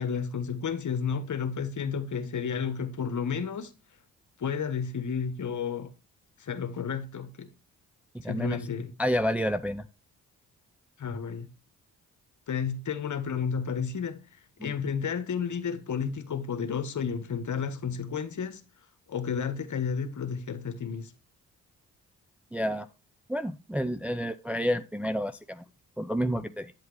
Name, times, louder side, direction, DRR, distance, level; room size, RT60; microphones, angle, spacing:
voice 1, 0.0-3.7 4.4-5.9 6.4-7.5 8.2-8.9 11.0-11.5 12.5-18.6 19.1-21.1, left 6 dB, 50° left, 1.3 m, -32 dB
voice 2, 8.2-8.6 9.0-9.8 14.6-14.7 22.5-22.9 23.3-25.6 26.0-26.7, equal, 5° right, 0.5 m, -29 dB
8.8 x 7.9 x 3.2 m
hypercardioid pair, 40°, 39 cm